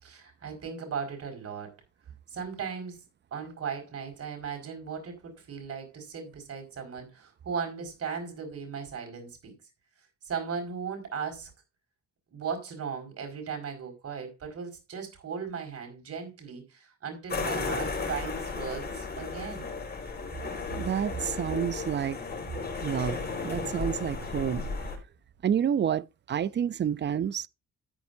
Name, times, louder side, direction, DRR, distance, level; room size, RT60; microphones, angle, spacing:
voice 1, 0.0-1.8 2.3-3.0 3.3-9.5 10.3-11.5 12.3-19.8, right 6 dB, 55° right, 5.1 m, -37 dB
sound 1, 17.3-25.0, left 4 dB, 35° left, 4.4 m, -34 dB
voice 2, 20.8-22.2 22.8-24.7 25.4-27.5, right 9 dB, 35° right, 0.5 m, -29 dB
13.5 x 9.2 x 2.6 m
cardioid pair, 90°, 30 cm